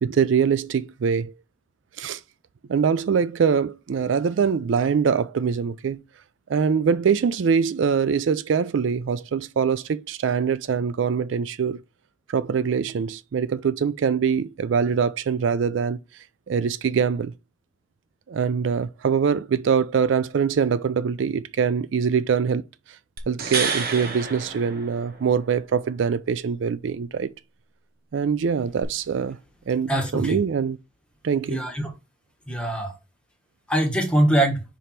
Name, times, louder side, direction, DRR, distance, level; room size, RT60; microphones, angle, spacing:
voice 1, 0.0-1.3 2.0-2.2 2.7-6.0 6.5-11.8 12.3-16.0 16.5-17.3 18.3-22.6 23.3-27.3 28.1-29.4 29.7-30.8 31.2-31.6, right 6 dB, 70° right, 0.4 m, -23 dB
sound 1, 23.2-25.4 28.8-28.9, right 5 dB, 55° right, 1.1 m, -29 dB
voice 2, 29.9-30.4 31.5-31.9 32.5-33.0 33.7-34.6, right 1 dB, 5° left, 1.5 m, -22 dB
5.1 x 4.5 x 4.3 m
head